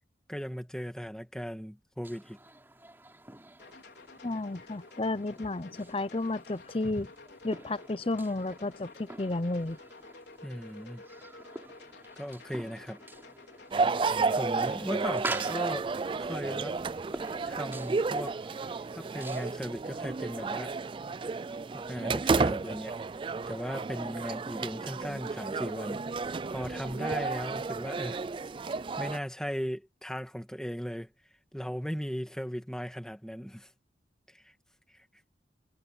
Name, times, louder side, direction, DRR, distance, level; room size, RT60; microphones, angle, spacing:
voice 1, 0.3-2.4 10.4-11.0 12.2-13.0 14.3-15.9 16.2-16.8 17.5-18.4 18.9-20.8 21.7-23.0 23.5-28.2 28.7-31.1 31.5-33.7 34.3-34.5, equal, 5° left, 2.0 m, -37 dB
sound 1, 2.0-19.6, right 2 dB, 15° right, 3.3 m, -46 dB
sound 2, 3.6-15.1, left 3 dB, 70° left, 4.9 m, -51 dB
voice 2, 4.2-7.1 7.4-9.8, left 2 dB, 30° left, 0.6 m, -32 dB
sound 3, 13.7-29.2, right 4 dB, 30° right, 0.3 m, -32 dB
head